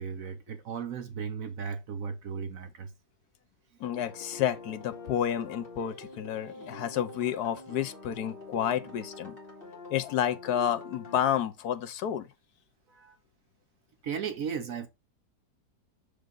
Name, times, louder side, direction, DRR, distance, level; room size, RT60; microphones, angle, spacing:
voice 1, 0.0-2.9 12.9-13.2 14.0-14.9, right 6 dB, 60° right, 1.1 m, -36 dB
voice 2, 3.8-9.4 9.9-12.3, left 10 dB, 70° left, 1.3 m, -30 dB
sound 1, 3.8-11.2, left 3 dB, 35° left, 2.3 m, -45 dB
6.3 x 5.1 x 3.7 m
omnidirectional pair, 1.8 m